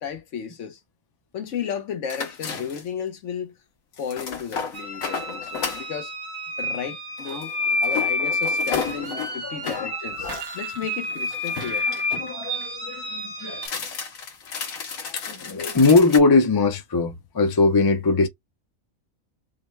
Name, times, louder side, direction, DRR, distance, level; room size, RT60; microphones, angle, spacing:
voice 1, 0.0-0.8 1.3-3.6 4.0-6.1 6.6-7.5 7.8-11.9, left 7 dB, 65° left, 1.1 m, -33 dB
sound 1, 2.1-3.0 3.9-5.9 7.2-9.9 11.1-12.3 13.5-16.2, left 6 dB, 85° left, 1.4 m, -33 dB
sound 2, 4.7-13.7, left 2 dB, 30° right, 1.1 m, -29 dB
voice 2, 8.9-9.9 10.2-10.4 11.9-13.7 15.1-18.3, left 3 dB, 35° left, 0.3 m, -21 dB
sound 3, 10.0-13.1 13.4-13.8, right 4 dB, 90° right, 1.5 m, -43 dB
5.1 x 2.2 x 3.2 m
omnidirectional pair, 1.4 m